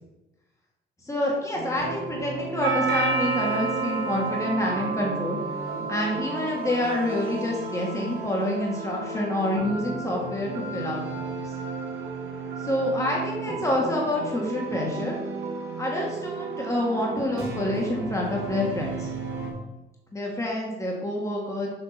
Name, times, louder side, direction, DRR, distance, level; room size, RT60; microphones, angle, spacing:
voice 1, 1.0-5.4 5.9-11.3 12.6-15.2 15.8-19.1 20.1-21.7, left 1 dB, 15° left, -2 dB, 1.9 m, -27 dB
sound 1, 1.5-19.5, right 4 dB, 85° right, 1.8 m, -34 dB
Doorbell, 2.6-10.7, right 4 dB, 65° right, 2.0 m, -32 dB
7.1 x 3.5 x 5.8 m, 1.0 s
cardioid pair, 90°, 20 cm